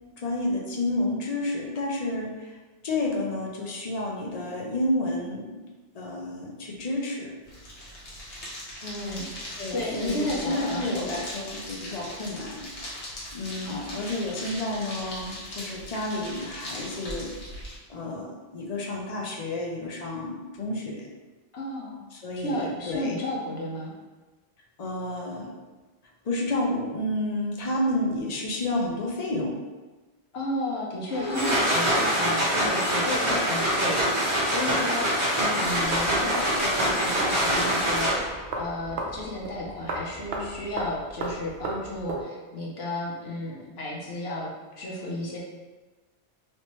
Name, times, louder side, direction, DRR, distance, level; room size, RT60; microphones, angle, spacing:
voice 1, 0.1-2.6 2.8-5.6 5.9-7.3 9.6-17.3 17.9-21.1 22.1-23.2 24.8-25.5 26.2-29.6, left 1 dB, 45° left, -2 dB, 0.5 m, -30 dB
sound 1, 7.4-17.8, left 1 dB, 85° left, 1.3 m, -39 dB
voice 2, 8.8-11.0 13.7-13.8 21.5-22.0 22.4-23.9 30.3-35.0 35.4-44.5 44.8-45.4, left 1 dB, 65° left, -3 dB, 0.9 m, -33 dB
sound 2, 31.1-38.5, equal, 30° right, 0.7 m, -25 dB
sound 3, 35.6-42.2, right 2 dB, 65° right, 0.8 m, -35 dB
3.2 x 3.0 x 2.9 m, 1.2 s
omnidirectional pair, 1.2 m